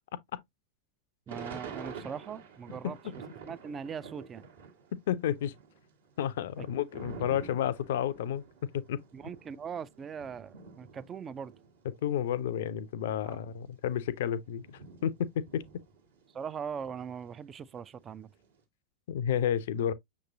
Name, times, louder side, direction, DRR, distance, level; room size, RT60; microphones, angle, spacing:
voice 1, 1.3-3.0 3.5-4.4 6.6-6.8 9.1-11.5 13.2-13.4 16.3-18.3, right 7 dB, 25° right, 0.3 m, -40 dB
Thunder / Rain, 1.3-4.9 5.2-12.3 12.9-13.0 13.2-16.4 16.7-18.4, right 5 dB, 65° right, 1.2 m, -48 dB
voice 2, 4.9-5.5 6.2-9.0 12.0-15.6 19.1-19.9, left 9 dB, 55° left, 0.4 m, -31 dB
6.3 x 3.0 x 2.5 m
figure-of-eight pair, 90°, 0 cm